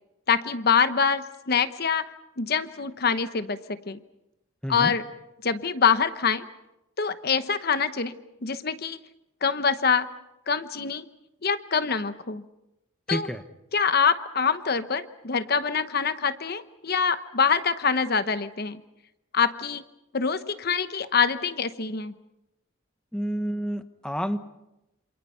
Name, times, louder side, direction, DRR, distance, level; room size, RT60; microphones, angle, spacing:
voice 1, 0.3-2.1 2.4-4.0 4.7-5.0 5.4-6.4 7.0-8.1 8.4-9.0 9.4-10.1 10.5-11.1 11.4-12.4 13.1-13.3 13.7-18.8 19.3-19.8 20.1-22.1, left 6 dB, 50° left, 11 dB, 0.9 m, -25 dB
voice 2, 4.6-4.9 13.1-13.4 23.1-24.4, equal, 5° left, 8 dB, 1.1 m, -29 dB
28.0 x 27.5 x 5.6 m, 0.92 s
head